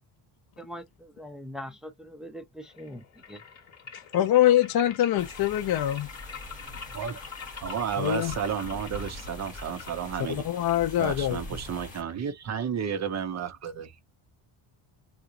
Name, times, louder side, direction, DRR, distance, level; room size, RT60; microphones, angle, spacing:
voice 1, 0.6-3.4, equal, ahead, 0.6 m, -42 dB
sound 1, 2.6-11.7, left 6 dB, 30° left, 2.5 m, -45 dB
voice 2, 4.1-6.1 8.0-8.3 10.3-11.4, left 12 dB, 50° left, 0.7 m, -24 dB
sound 2, 5.2-12.0, left 1 dB, 15° left, 1.7 m, -43 dB
voice 3, 7.6-10.4 11.0-14.0, right 8 dB, 35° right, 0.7 m, -32 dB
3.7 x 2.4 x 2.8 m
cardioid pair, 155°, 49 cm